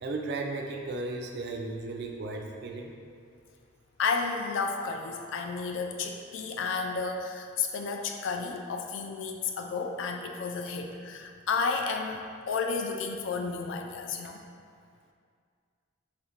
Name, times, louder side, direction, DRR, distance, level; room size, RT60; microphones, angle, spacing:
voice 1, 0.0-3.0 10.7-10.8, right 2 dB, 50° right, 2 dB, 0.3 m, -35 dB
voice 2, 4.0-14.4, left 4 dB, 60° left, 3 dB, 0.3 m, -32 dB
3.1 x 2.5 x 4.3 m, 2.2 s
head